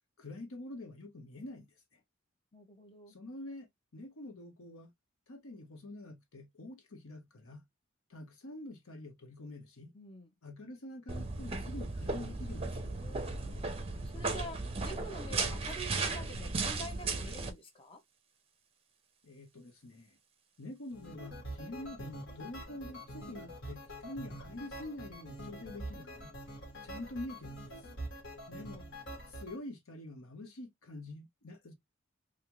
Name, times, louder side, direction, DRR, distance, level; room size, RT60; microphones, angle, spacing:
voice 1, 0.2-1.7 3.1-3.7 3.9-4.9 5.3-7.6 8.1-9.9 10.4-12.9 19.2-20.2 20.6-26.3 26.8-27.7 28.5-28.9 29.3-31.7, left 1 dB, 85° left, 1.1 m, -46 dB
voice 2, 2.5-3.1 9.9-10.3 12.8-13.6 14.1-18.0 25.9-26.9, equal, 25° left, 0.9 m, -48 dB
sound 1, 11.1-17.5, right 3 dB, 30° right, 0.6 m, -36 dB
sound 2, 20.9-29.6, right 1 dB, 55° left, 1.6 m, -45 dB
3.5 x 2.6 x 3.0 m
head